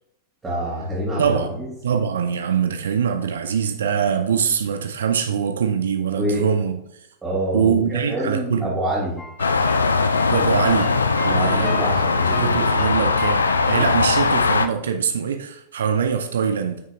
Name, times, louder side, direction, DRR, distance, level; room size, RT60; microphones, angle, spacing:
voice 1, 0.4-1.7 6.1-6.4 7.2-9.2 11.2-13.0, equal, 15° right, 2.6 m, -27 dB
voice 2, 1.2-6.8 7.5-8.8 10.3-10.9 11.2-11.8 12.3-16.8, right 7 dB, 65° right, 0.6 m, -23 dB
sound 1, 9.2-14.2, left 4 dB, 15° left, 1.2 m, -37 dB
sound 2, 9.4-14.7, left 4 dB, 75° left, 0.5 m, -20 dB
8.9 x 6.3 x 2.3 m
figure-of-eight pair, 90°, 0 cm